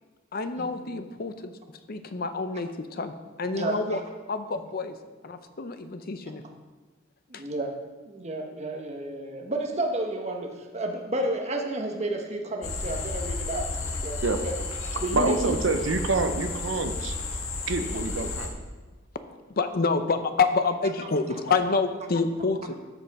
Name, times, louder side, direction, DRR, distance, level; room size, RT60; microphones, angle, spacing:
voice 1, 0.3-1.6 1.9-4.0 4.3-5.0 5.2-6.4 7.3-7.4 19.3-22.8, left 4 dB, 50° left, 9 dB, 0.6 m, -28 dB
voice 2, 3.5-4.0 7.3-7.8 8.0-14.5 15.0-15.5, right 1 dB, 35° right, 3 dB, 1.2 m, -31 dB
sound 1, 12.6-18.5, left 3 dB, 85° left, 1.4 m, -32 dB
voice 3, 15.1-17.1 17.7-18.5, right 3 dB, 65° right, 8 dB, 0.7 m, -26 dB
13.5 x 5.4 x 4.8 m, 1.3 s
head